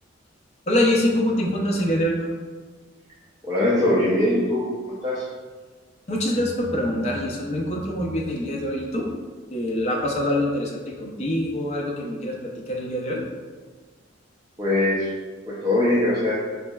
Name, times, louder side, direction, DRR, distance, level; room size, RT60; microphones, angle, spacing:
voice 1, 0.7-2.3 6.1-9.1 9.5-13.2, left 1 dB, 35° left, -1 dB, 0.5 m, -24 dB
voice 2, 3.4-4.7 5.0-5.3 14.6-15.1 15.5-16.3, left 1 dB, 20° right, -8 dB, 0.5 m, -21 dB
4.4 x 3.0 x 2.2 m, 1.4 s
head